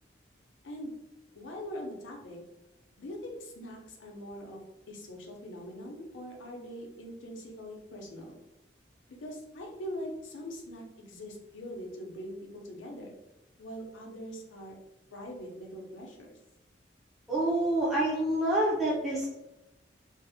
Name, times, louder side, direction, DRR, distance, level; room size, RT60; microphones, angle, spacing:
voice 1, 1.3-2.4 3.0-4.6 4.9-8.4 9.2-13.1 13.6-14.8 15.1-16.4, equal, 85° left, 0 dB, 0.5 m, -42 dB
voice 2, 17.3-19.3, right 1 dB, ahead, -6 dB, 0.4 m, -27 dB
2.5 x 2.0 x 2.6 m, 0.94 s
head